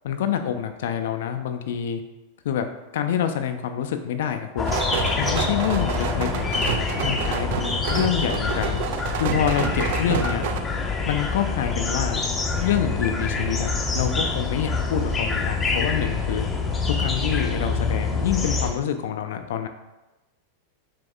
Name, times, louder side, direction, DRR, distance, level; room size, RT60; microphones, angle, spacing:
voice 1, 0.0-2.0 2.4-2.6 2.9-4.7 5.2-8.8 9.2-10.4 11.1-12.2 12.6-16.5 16.9-19.7, left 9 dB, 55° left, 7 dB, 0.4 m, -27 dB
sound 1, 4.6-18.7, left 4 dB, 15° left, 0.6 m, -26 dB
sound 2, 4.7-10.6, right 9 dB, 50° right, 0.3 m, -29 dB
6.5 x 3.4 x 2.4 m, 1.0 s
figure-of-eight pair, 90°, 0 cm